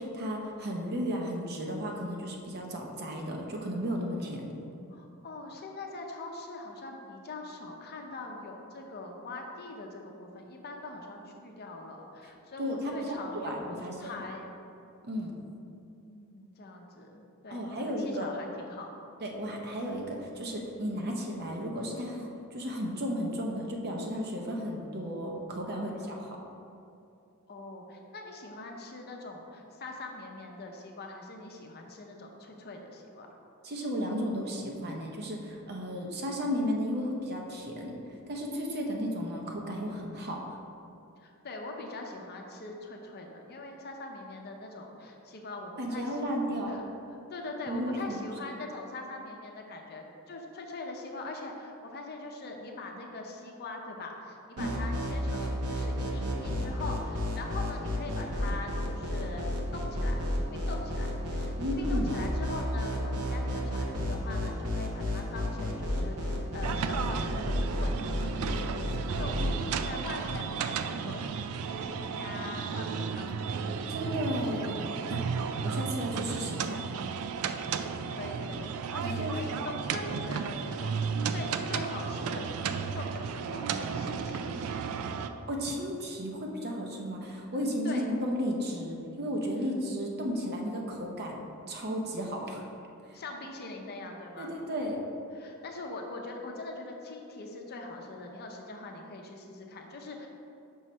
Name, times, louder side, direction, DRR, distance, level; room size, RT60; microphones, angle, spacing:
voice 1, 0.0-4.5 12.6-14.2 15.0-15.3 17.5-18.3 19.2-26.3 33.6-38.0 38.3-40.4 45.8-46.8 47.7-48.2 54.6-54.7 61.6-62.2 69.5-69.6 73.7-75.2 75.6-76.8 79.0-79.4 85.5-91.4 91.7-92.6 93.1-93.2 94.4-95.0, equal, 50° right, 0 dB, 0.7 m, -34 dB
voice 2, 4.9-14.5 15.9-18.9 25.9-26.2 27.5-33.3 41.2-46.2 46.7-46.8 47.3-60.2 60.5-66.2 66.5-68.7 69.1-73.6 78.1-82.4 82.7-84.8 87.8-88.1 93.1-94.5 95.3-100.3, left 2 dB, 45° left, 2 dB, 0.6 m, -42 dB
sound 1, 54.6-69.5, left 1 dB, 85° right, 0.9 m, -32 dB
sound 2, 66.6-85.3, right 6 dB, 70° right, 0.3 m, -34 dB
5.5 x 3.1 x 5.5 m, 2.7 s
head